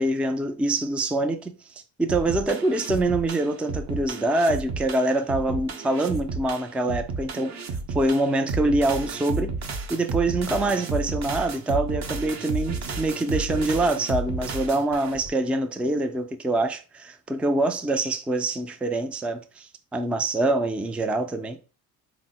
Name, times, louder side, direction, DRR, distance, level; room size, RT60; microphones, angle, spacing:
voice 1, 0.0-7.6 7.9-9.5 9.9-21.6, right 2 dB, 5° right, 0.3 m, -25 dB
sound 1, 2.1-15.3, right 3 dB, 45° right, 0.7 m, -32 dB
3.7 x 2.1 x 4.1 m
supercardioid pair, 65°, 38 cm